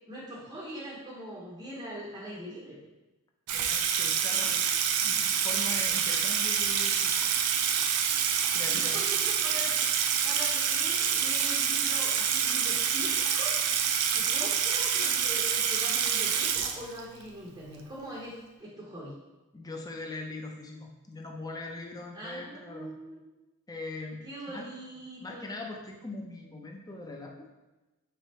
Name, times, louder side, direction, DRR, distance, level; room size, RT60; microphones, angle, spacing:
voice 1, 0.1-2.8 8.7-9.9 10.2-19.2 22.1-23.2 24.2-25.5, equal, 20° right, -6 dB, 0.7 m, -42 dB
voice 2, 3.5-4.6 5.0-7.3 8.5-9.0 19.5-22.9 23.7-24.6 25.2-27.5, left 2 dB, 15° left, 2 dB, 0.5 m, -41 dB
Water tap faucet / Sink (filling or washing), 3.5-17.2, right 7 dB, 85° right, 0.4 m, -27 dB
3.5 x 3.4 x 4.2 m, 1.1 s
head